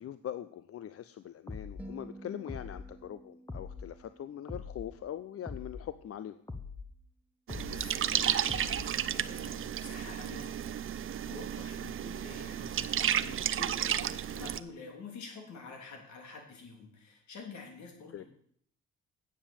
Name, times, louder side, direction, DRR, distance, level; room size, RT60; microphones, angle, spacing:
voice 1, 0.0-6.4 18.1-18.2, left 10 dB, 50° left, 13 dB, 0.5 m, -42 dB
sound 1, 1.5-1.9 2.5-2.9 3.5-3.9 4.5-4.9 5.4-5.9 6.5-6.9 7.5-7.9 8.5-8.9, left 4 dB, 15° left, 1.0 m, -42 dB
sound 2, 1.8-6.1, right 2 dB, 5° right, 1.5 m, -52 dB
sound 3, 7.5-14.6, right 9 dB, 45° right, 0.6 m, -33 dB
voice 2, 7.7-10.5 11.0-18.2, left 4 dB, 70° left, 2 dB, 3.4 m, -48 dB
9.3 x 7.2 x 7.1 m, 0.65 s
cardioid pair, 90°, 30 cm